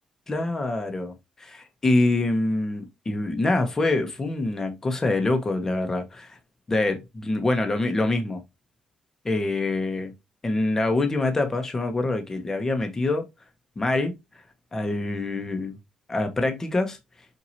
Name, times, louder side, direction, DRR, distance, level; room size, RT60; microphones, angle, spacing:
voice 1, 0.3-1.1 1.4-1.5 1.8-6.4 6.7-8.4 9.2-10.1 10.4-13.3 13.8-14.1 14.7-15.7 16.1-17.0, left 2 dB, 20° left, 1.2 m, -25 dB
5.8 x 2.9 x 2.7 m
cardioid pair, 115°, 2 cm